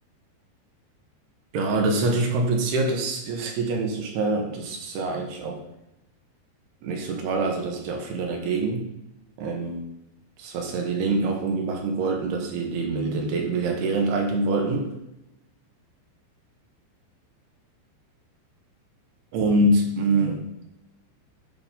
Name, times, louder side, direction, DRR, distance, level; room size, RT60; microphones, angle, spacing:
voice 1, 1.5-5.6 6.8-8.9 9.4-9.8 10.4-14.9 19.3-20.4, right 2 dB, 70° right, 2 dB, 2.8 m, -25 dB
9.4 x 3.8 x 5.4 m, 0.91 s
omnidirectional pair, 5.2 m